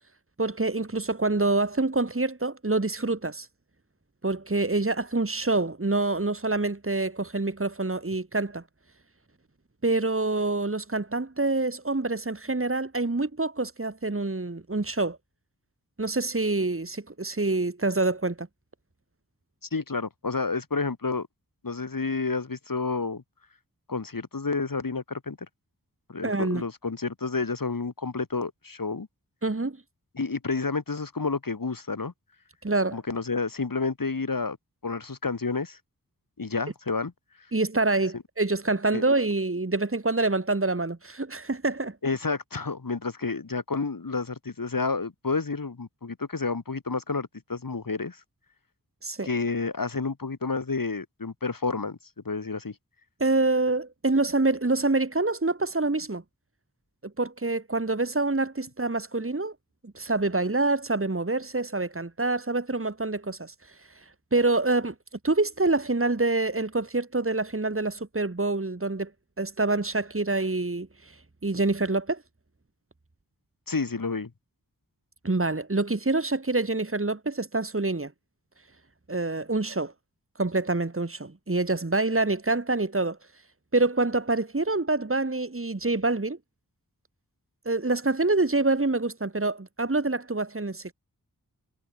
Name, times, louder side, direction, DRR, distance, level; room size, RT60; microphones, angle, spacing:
voice 1, 0.4-3.5 4.2-8.6 9.8-15.2 16.0-18.5 26.2-26.6 29.4-29.8 32.6-33.0 37.5-42.0 49.0-49.3 53.2-56.2 57.2-59.5 59.9-64.0 64.3-64.9 65.2-69.1 69.4-72.2 75.2-78.1 79.1-79.9 80.4-83.2 83.7-86.4 87.7-90.9, right 2 dB, 40° right, 4.1 m, -26 dB
voice 2, 19.7-21.3 21.6-23.2 23.9-25.4 26.1-29.1 30.2-32.1 32.9-34.6 34.8-35.8 36.4-37.1 38.1-38.2 38.9-39.0 42.0-48.2 49.2-52.0 52.3-52.8 73.7-74.3, left 4 dB, 65° left, 5.2 m, -30 dB
wide cardioid pair, 70°, 35 cm